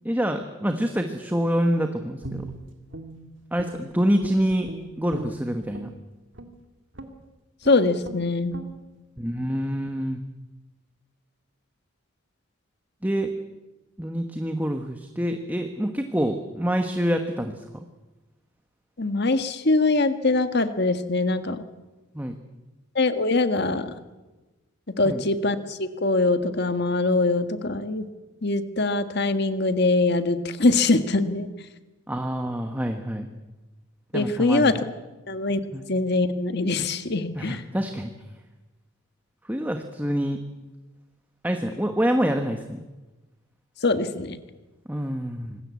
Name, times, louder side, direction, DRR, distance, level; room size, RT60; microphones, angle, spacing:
voice 1, 0.0-2.4 3.5-4.7 5.0-5.9 9.2-10.2 13.0-13.3 14.0-17.8 22.1-22.4 25.0-25.3 32.1-33.3 34.1-34.8 35.7-35.8 37.3-38.1 39.5-40.4 41.4-42.8 44.9-45.6, equal, 10° right, 5 dB, 1.3 m, -26 dB
Guitar, 2.2-3.9 4.2-5.9 6.3-6.6 6.9-7.2 7.6-7.8 8.0-8.2 8.5-8.7, right 2 dB, 60° right, 2.5 m, -39 dB
voice 2, 7.6-8.5 19.0-21.6 23.0-23.9 25.0-28.1 28.4-31.5 34.1-34.8 35.3-35.6 35.9-37.6 43.8-44.4, left 2 dB, 50° left, 9 dB, 1.6 m, -23 dB
26.0 x 20.0 x 8.5 m, 1.1 s
head